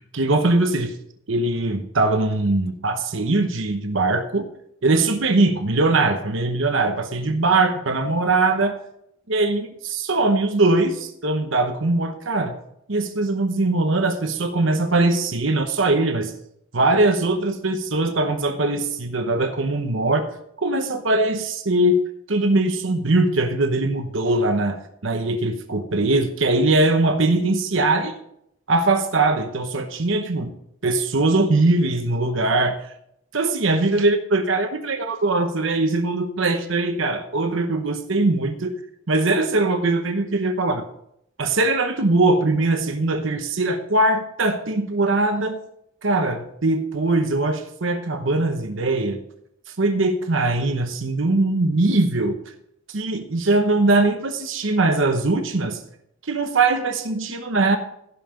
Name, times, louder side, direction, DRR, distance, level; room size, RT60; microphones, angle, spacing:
voice 1, 0.1-0.9 1.3-4.5 4.8-8.8 9.3-12.5 12.9-16.3 16.7-20.3 20.6-22.0 22.3-28.1 28.7-30.5 30.8-32.8 33.3-38.7 39.1-40.8 41.4-45.6 46.0-49.2 49.8-52.4 52.9-55.8 56.3-57.8, right 2 dB, 70° right, 7 dB, 0.9 m, -21 dB
16.0 x 5.7 x 5.1 m, 0.75 s
head